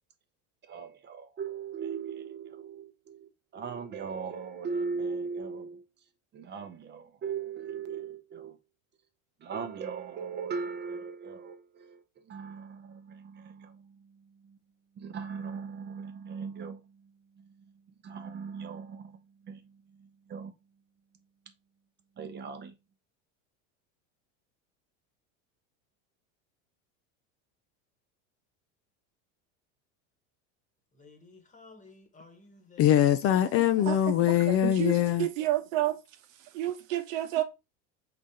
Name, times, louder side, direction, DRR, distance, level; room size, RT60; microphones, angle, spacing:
voice 1, 0.6-5.8 6.3-8.6 9.4-14.6 15.0-20.6 22.2-22.8, right 5 dB, 30° right, 0.7 m, -39 dB
voice 2, 30.9-33.0, left 4 dB, 20° left, 1.2 m, -54 dB
voice 3, 32.8-35.3, left 11 dB, 40° left, 0.4 m, -23 dB
voice 4, 34.5-36.0 36.5-37.4, right 13 dB, 85° right, 1.0 m, -29 dB
4.9 x 3.9 x 2.8 m
supercardioid pair, 120°, 38 cm